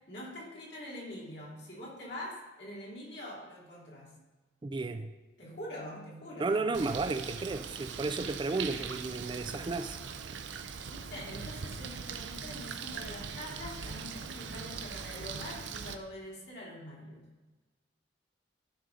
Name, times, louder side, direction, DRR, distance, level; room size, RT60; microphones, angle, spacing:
voice 1, 0.1-4.1 5.4-6.7 10.8-17.3, left 1 dB, 65° left, 3.0 m, -44 dB
voice 2, 4.6-5.1 6.4-10.0 10.3-10.4, right 3 dB, 25° right, 0.3 m, -33 dB
Bird, 6.7-15.9, right 6 dB, 80° right, 0.6 m, -41 dB
12.5 x 5.4 x 3.7 m
head